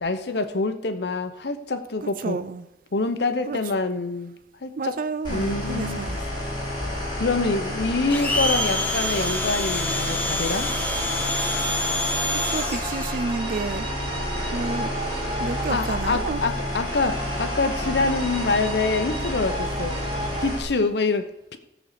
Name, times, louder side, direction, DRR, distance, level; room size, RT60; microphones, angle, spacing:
voice 1, 0.0-2.4 2.9-4.3 4.6-5.0 5.3-6.0 7.2-10.7 15.5-20.0 20.4-21.3 21.5-21.6, left 3 dB, 65° left, 9 dB, 0.9 m, -26 dB
voice 2, 2.0-2.7 3.5-3.6 4.8-6.2 12.3-13.9 14.5-14.9 15.4-16.4, right 4 dB, 50° right, 12 dB, 0.4 m, -30 dB
sound 1, 5.2-20.6, left 1 dB, 25° left, 4.8 m, -30 dB
Domestic sounds home sounds, 8.1-13.2, left 1 dB, 10° left, 1.2 m, -27 dB
sound 2, 10.9-20.5, right 1 dB, 30° right, 1.3 m, -35 dB
15.5 x 5.4 x 6.7 m, 0.90 s
head